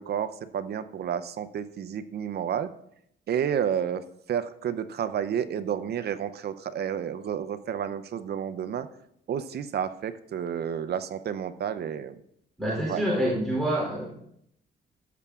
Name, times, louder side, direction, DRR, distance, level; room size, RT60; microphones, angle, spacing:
voice 1, 0.0-2.7 3.3-8.9 9.3-12.2 12.9-13.0, right 8 dB, 55° right, 12 dB, 0.5 m, -30 dB
voice 2, 12.6-14.1, right 1 dB, ahead, -6 dB, 3.1 m, -27 dB
14.0 x 6.9 x 2.4 m, 0.73 s
cardioid pair, 90°, 20 cm